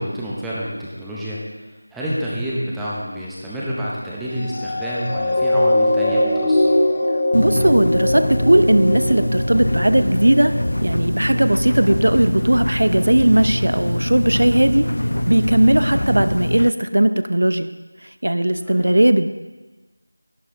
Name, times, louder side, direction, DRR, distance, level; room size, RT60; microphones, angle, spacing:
voice 1, 0.0-1.4 1.9-6.8 18.6-18.9, equal, ahead, -8 dB, 0.7 m, -28 dB
sound 1, 4.4-11.1 11.7-11.9, left 1 dB, 20° left, 1.0 m, -21 dB
sound 2, 7.3-16.7, left 1 dB, 80° left, 0.3 m, -23 dB
voice 2, 7.3-10.5 10.8-14.9 15.3-17.7 18.2-19.3, right 1 dB, 70° right, 11 dB, 0.7 m, -17 dB
11.5 x 11.5 x 3.8 m, 1.2 s
figure-of-eight pair, 175°, 0 cm